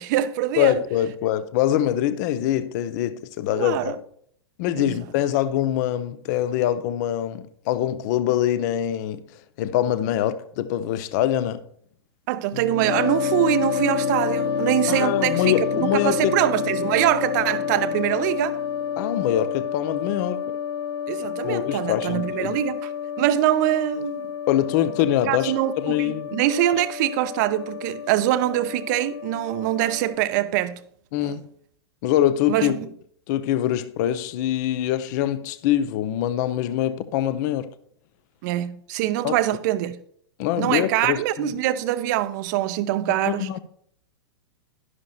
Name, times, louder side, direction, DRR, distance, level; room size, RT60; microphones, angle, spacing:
voice 1, 0.0-0.8 3.5-4.0 4.8-4.9 12.3-18.6 21.1-22.9 23.2-24.3 25.3-25.7 26.0-30.8 31.2-31.3 32.5-32.9 38.4-40.0 40.6-43.5, right 14 dB, 40° right, 0.6 m, -24 dB
voice 2, 0.6-4.0 4.6-9.2 9.6-11.6 14.9-16.3 19.0-20.4 21.4-22.6 24.5-26.4 31.1-31.4 32.0-32.8 33.3-37.7 39.2-39.4 40.4-41.5 43.2-43.6, left 12 dB, 40° left, 0.7 m, -24 dB
sound 1, 12.5-19.2, left 3 dB, 85° left, 0.9 m, -33 dB
sound 2, 12.9-30.2, left 8 dB, 55° left, 1.1 m, -29 dB
11.5 x 11.0 x 2.4 m
figure-of-eight pair, 105°, 14 cm